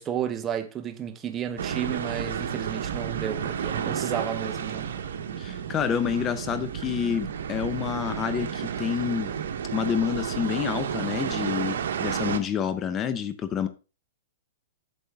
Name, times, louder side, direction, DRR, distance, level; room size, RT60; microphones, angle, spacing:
voice 1, 0.0-4.9, right 9 dB, 20° right, 0.8 m, -32 dB
sound 1, 1.6-12.4, right 8 dB, 75° right, 1.1 m, -31 dB
voice 2, 5.4-9.3 9.7-13.7, left 8 dB, 20° left, 0.6 m, -28 dB
8.5 x 6.9 x 3.6 m
hypercardioid pair, 145°, 0 cm